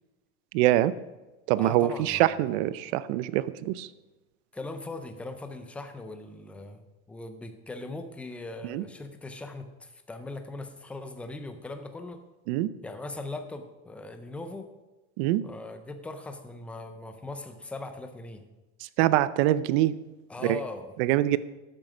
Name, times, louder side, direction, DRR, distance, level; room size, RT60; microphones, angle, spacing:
voice 1, 0.5-0.9 1.5-3.9 8.6-8.8 12.5-12.7 15.2-15.4 19.0-20.0 20.4-20.6 21.0-21.4, right 14 dB, 65° right, 16 dB, 0.6 m, -24 dB
voice 2, 1.6-2.2 4.5-6.8 7.1-12.2 12.8-14.7 15.4-18.4 20.3-20.9 21.3-21.4, left 2 dB, 5° left, 8 dB, 0.3 m, -40 dB
13.0 x 7.6 x 5.0 m, 1.1 s
cardioid pair, 175°, 35 cm